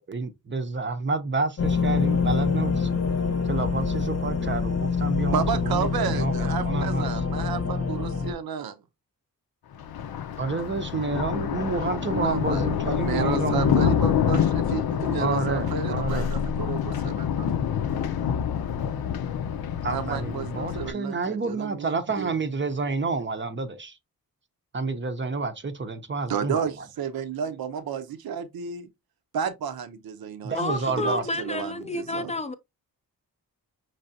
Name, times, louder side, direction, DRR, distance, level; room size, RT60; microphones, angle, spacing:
voice 1, 0.1-2.9 3.5-7.1 10.4-14.0 15.2-16.3 19.8-24.0 24.7-26.9 30.4-31.2, right 3 dB, 30° right, 0.6 m, -29 dB
sound 1, 1.6-8.3, left 5 dB, 40° left, 0.8 m, -26 dB
voice 2, 5.3-8.8 11.8-17.5 19.9-22.3 26.3-28.9 29.3-32.3, right 7 dB, 75° right, 0.7 m, -32 dB
Thunder, 9.7-20.9, left 8 dB, 80° left, 0.6 m, -27 dB
voice 3, 30.5-32.5, left 2 dB, 20° left, 0.4 m, -30 dB
5.5 x 3.2 x 2.6 m
wide cardioid pair, 160°, 36 cm